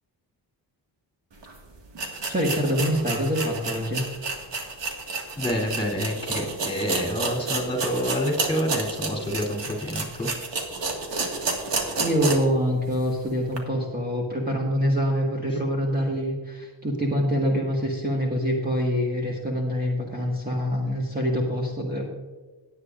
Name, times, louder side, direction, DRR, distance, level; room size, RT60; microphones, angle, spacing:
sound 1, 1.4-1.5 1.9-12.6 12.9-13.0 13.5-13.6, right 3 dB, 70° right, 1.9 m, -30 dB
voice 1, 2.3-4.0 12.0-22.0, equal, 20° right, -2 dB, 1.7 m, -25 dB
voice 2, 5.3-10.3 15.5-15.6, equal, 10° left, -2 dB, 3.3 m, -28 dB
17.5 x 9.1 x 2.6 m, 1.3 s
wide cardioid pair, 115°, 44 cm